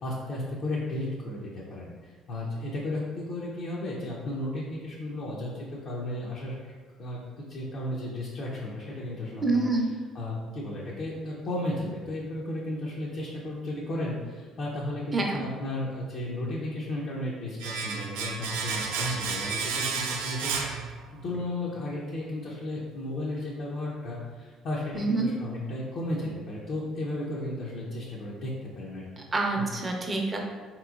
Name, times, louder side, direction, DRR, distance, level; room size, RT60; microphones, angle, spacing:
voice 1, 0.0-6.7 7.0-9.8 10.1-20.5 21.2-29.2 29.6-29.7, left 1 dB, 65° left, -6 dB, 0.6 m, -34 dB
voice 2, 9.4-9.9 15.1-15.5 24.9-25.3 29.3-30.4, right 2 dB, 25° right, 1 dB, 0.6 m, -26 dB
Domestic sounds home sounds, 17.6-21.4 21.7-21.8, right 5 dB, 85° right, 0.3 m, -32 dB
3.5 x 2.9 x 2.4 m, 1.5 s
supercardioid pair, 75°, 0 cm